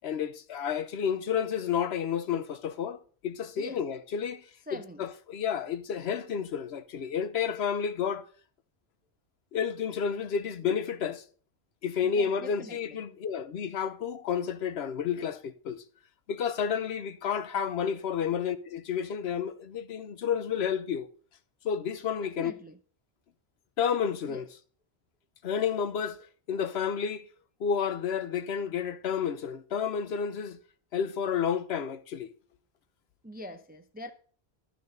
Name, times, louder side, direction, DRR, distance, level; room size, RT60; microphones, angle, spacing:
voice 1, 0.0-4.4 4.7-8.2 9.5-11.2 11.8-15.8 16.3-21.1 21.6-22.5 23.8-24.5 25.4-27.3 27.6-30.6 30.9-32.3, left 7 dB, 85° left, 1.0 m, -31 dB
voice 2, 4.7-5.0 12.0-13.0 22.2-22.8 24.3-24.4 33.2-34.1, equal, 15° right, 0.4 m, -44 dB
12.0 x 4.0 x 6.5 m
omnidirectional pair, 1.1 m